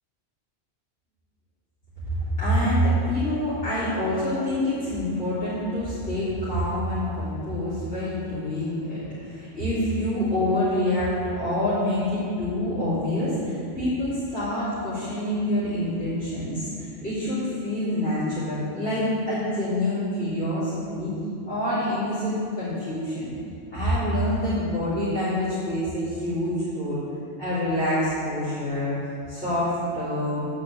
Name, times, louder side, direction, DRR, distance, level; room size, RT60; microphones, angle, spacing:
voice 1, 2.1-21.1 21.5-23.3 23.7-27.0 27.4-29.0 29.3-30.4, left 1 dB, 85° left, -11 dB, 4.0 m, -26 dB
13.5 x 5.3 x 8.4 m, 2.5 s
omnidirectional pair, 1.1 m